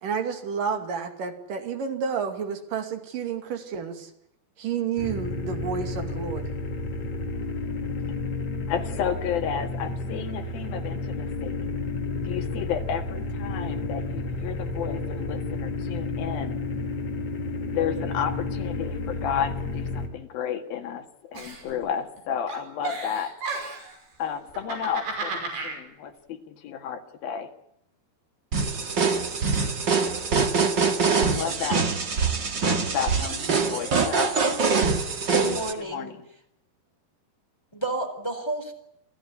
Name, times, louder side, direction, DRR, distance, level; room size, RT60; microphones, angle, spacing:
voice 1, 0.0-4.1 4.6-6.5, right 6 dB, 55° right, 6 dB, 3.9 m, -30 dB
sound 1, 5.0-20.1, left 2 dB, 45° left, 4.0 m, -31 dB
voice 2, 8.7-11.7 12.2-16.6 17.7-23.3 24.2-27.5 31.1-31.9 32.4-34.6 35.9-36.3, left 8 dB, 65° left, 6 dB, 3.6 m, -32 dB
Giggle, 21.3-22.2 22.5-23.9 24.5-25.8, right 3 dB, 75° right, 7.9 m, -33 dB
sound 2, 28.5-35.7, right 5 dB, 40° right, 1.9 m, -24 dB
voice 3, 35.3-36.1 37.7-38.7, right 2 dB, 5° left, 6 dB, 3.5 m, -30 dB
28.0 x 16.0 x 9.8 m, 0.76 s
omnidirectional pair, 4.7 m